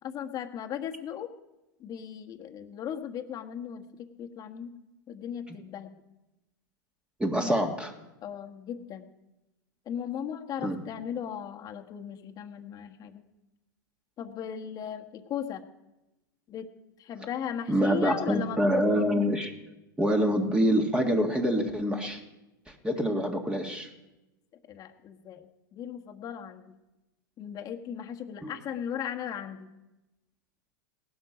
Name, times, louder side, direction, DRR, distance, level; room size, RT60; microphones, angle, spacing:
voice 1, 0.0-1.3 1.8-4.7 5.1-5.9 7.3-7.6 8.2-9.1 9.8-13.2 14.2-15.6 16.5-16.7 17.0-19.1 24.7-26.7 27.4-29.7, left 9 dB, 35° left, 5 dB, 1.5 m, -37 dB
voice 2, 7.2-7.9 10.6-10.8 17.7-19.5 20.0-22.2 22.8-23.9 28.4-28.5, equal, 10° right, 3 dB, 1.8 m, -26 dB
18.0 x 12.0 x 5.2 m, 0.99 s
hypercardioid pair, 120°, 12 cm